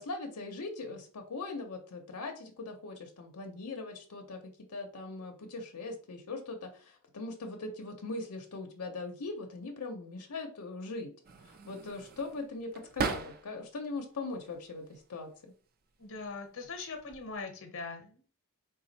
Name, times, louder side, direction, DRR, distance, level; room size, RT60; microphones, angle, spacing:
voice 1, 0.0-11.1 11.4-15.5, left 3 dB, 90° left, 3 dB, 0.7 m, -40 dB
sound 1, 11.2-13.7 14.2-15.0 15.9-16.3 16.6-17.4, right 4 dB, 45° right, 0.4 m, -39 dB
voice 2, 16.0-18.2, left 4 dB, 60° left, 6 dB, 0.8 m, -41 dB
4.1 x 2.3 x 3.9 m, 0.41 s
head